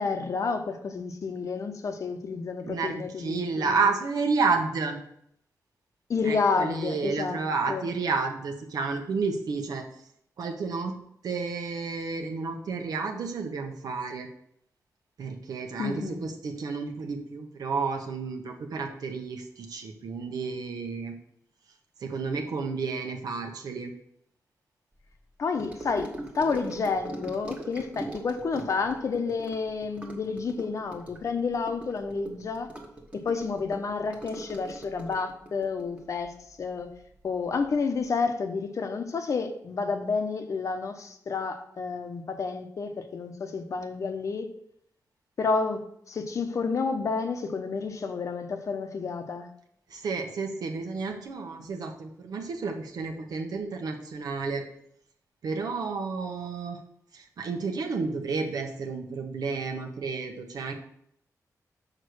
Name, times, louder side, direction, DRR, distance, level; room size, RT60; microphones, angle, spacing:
voice 1, 0.0-3.8 6.1-7.4 7.7-7.9 15.8-16.2 25.4-32.7 33.1-36.9 37.2-44.5 45.4-49.5, left 4 dB, 55° left, 0.9 m, -30 dB
voice 2, 2.6-5.0 6.2-9.8 10.4-10.9 11.2-14.3 15.2-21.1 22.0-23.9 49.9-54.6 55.4-56.8 57.1-60.7, right 4 dB, 80° right, 1.2 m, -31 dB
Gurgling / Sink (filling or washing) / Trickle dribble, 25.5-37.2 37.5-37.8 38.1-38.2, right 2 dB, 20° right, 1.3 m, -42 dB
6.6 x 5.0 x 6.4 m
wide cardioid pair, 130°, 6 cm